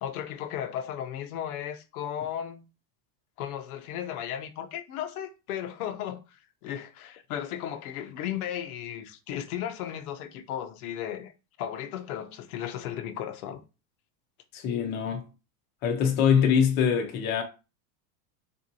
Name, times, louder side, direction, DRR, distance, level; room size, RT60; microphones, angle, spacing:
voice 1, 0.0-2.6 3.4-11.3 11.6-13.6, left 10 dB, 90° left, 0.7 m, -35 dB
voice 2, 14.5-15.2 15.8-17.4, left 7 dB, 25° left, 0.4 m, -23 dB
3.4 x 2.6 x 2.7 m
supercardioid pair, 155°, 43 cm